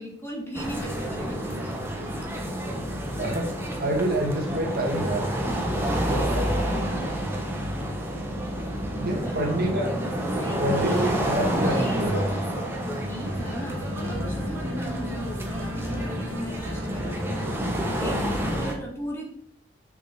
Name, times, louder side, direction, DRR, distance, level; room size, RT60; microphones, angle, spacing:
voice 1, 0.0-1.8 5.4-7.2 8.9-9.4 10.2-11.1 11.5-17.2 17.9-19.3, equal, 15° left, -1 dB, 1.9 m, -37 dB
sound 1, 0.5-18.7, equal, 10° right, 1.3 m, -29 dB
voice 2, 3.8-5.3 6.0-6.5 9.0-9.9 10.6-12.3, right 1 dB, 50° right, 1 dB, 2.0 m, -27 dB
Organ, 13.2-18.6, left 1 dB, 80° right, 1.8 m, -33 dB
7.0 x 6.6 x 6.0 m, 0.67 s
head